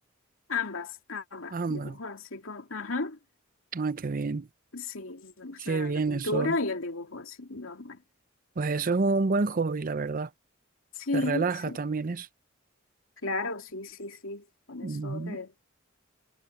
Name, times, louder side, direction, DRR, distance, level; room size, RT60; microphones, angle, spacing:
voice 1, 0.5-3.2 4.7-8.0 11.0-11.8 13.2-15.5, left 3 dB, 75° left, 2.6 m, -34 dB
voice 2, 1.5-2.0 3.7-4.5 5.6-6.5 8.6-10.3 11.1-12.3 14.8-15.4, right 3 dB, 45° right, 0.6 m, -29 dB
head